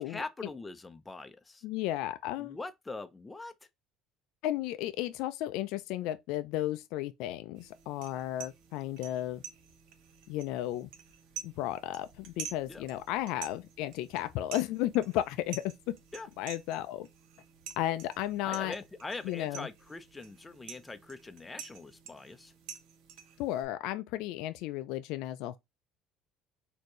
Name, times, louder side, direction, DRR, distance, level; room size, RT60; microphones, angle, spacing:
voice 1, 0.0-1.6 2.4-3.5 12.7-12.8 16.1-16.3 18.4-22.5, left 3 dB, 15° left, 0.5 m, -42 dB
voice 2, 1.6-2.6 4.4-9.4 10.3-10.9 11.4-15.6 16.4-17.1 17.8-18.7 19.2-19.7 23.4-25.6, left 14 dB, 75° left, 0.4 m, -34 dB
sound 1, 7.6-23.6, right 8 dB, 75° right, 0.8 m, -49 dB
4.3 x 2.7 x 3.1 m
cardioid pair, 125°, 0 cm